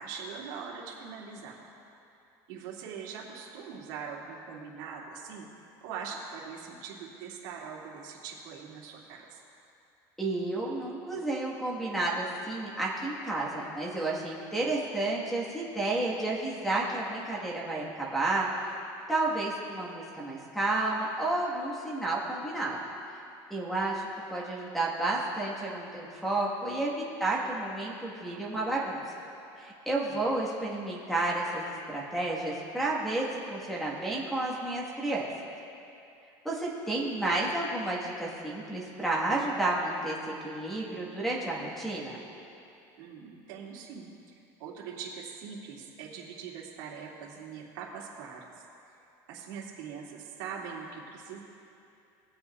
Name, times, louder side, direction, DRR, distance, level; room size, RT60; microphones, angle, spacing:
voice 1, 0.0-1.6 2.5-5.5 5.8-9.3 30.1-30.3 43.0-44.1 44.6-48.5 49.3-51.4, right 6 dB, 85° right, -3 dB, 2.3 m, -42 dB
voice 2, 10.2-18.7 19.1-22.8 23.5-29.0 29.6-35.2 36.4-42.2, right 2 dB, ahead, -4 dB, 1.4 m, -31 dB
21.0 x 8.2 x 2.3 m, 2.8 s
cardioid pair, 160°, 10 cm